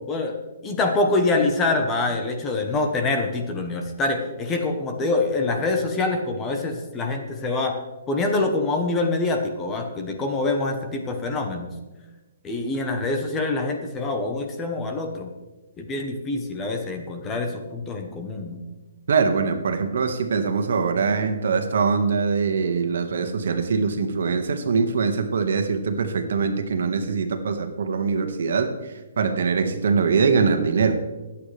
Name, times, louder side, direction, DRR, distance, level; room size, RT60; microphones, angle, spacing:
voice 1, 0.6-7.8 8.1-11.7 12.4-15.3 15.8-18.6, left 2 dB, 15° left, 4 dB, 1.0 m, -25 dB
voice 2, 19.1-28.7 29.2-31.0, right 5 dB, 65° right, 6 dB, 1.6 m, -23 dB
22.5 x 8.6 x 3.4 m, 1.1 s
hypercardioid pair, 175°, 0 cm